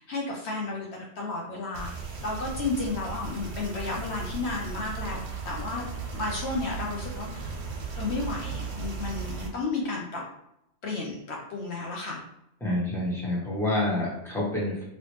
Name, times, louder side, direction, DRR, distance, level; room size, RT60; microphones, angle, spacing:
voice 1, 0.0-1.9 2.2-7.4 8.0-10.2 10.8-12.2, left 3 dB, 65° left, -1 dB, 0.8 m, -32 dB
sound 1, 1.7-9.5, right 5 dB, 85° right, 1.1 m, -36 dB
voice 2, 12.6-14.8, left 1 dB, ahead, -6 dB, 1.0 m, -28 dB
3.0 x 2.7 x 3.1 m, 0.80 s
omnidirectional pair, 1.3 m